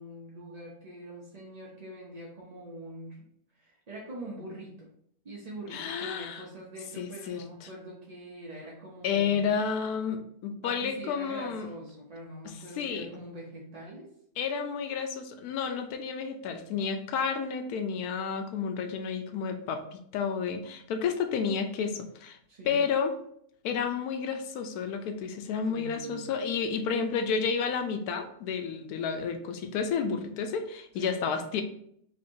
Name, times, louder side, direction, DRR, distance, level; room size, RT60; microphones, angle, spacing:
voice 1, 0.0-3.2 3.6-4.9 5.2-9.6 10.6-14.1 22.5-22.9 25.7-26.3 30.9-31.2, right 1 dB, 50° right, -4 dB, 0.4 m, -43 dB
voice 2, 5.7-6.4 7.0-7.7 9.0-11.7 12.4-13.1 14.4-22.4 22.6-23.2 23.6-31.6, left 6 dB, 80° left, 6 dB, 1.1 m, -31 dB
3.1 x 2.6 x 4.3 m, 0.69 s
omnidirectional pair, 1.6 m